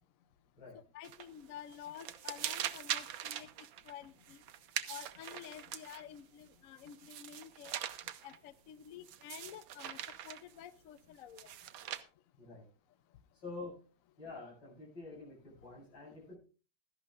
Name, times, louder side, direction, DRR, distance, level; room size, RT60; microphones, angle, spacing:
voice 1, 0.9-3.5 3.8-4.4 4.9-7.8 8.2-10.0 10.2-11.5, left 10 dB, 65° left, 14 dB, 0.8 m, -50 dB
sound 1, 1.0-1.4 1.7-6.2 6.8-8.4 9.0-10.5 11.4-12.0, right 11 dB, 90° right, 1.6 m, -42 dB
voice 2, 13.3-13.8 14.2-16.4, left 3 dB, 80° left, -4 dB, 8.7 m, -47 dB
16.5 x 13.5 x 2.5 m, 0.35 s
omnidirectional pair, 2.1 m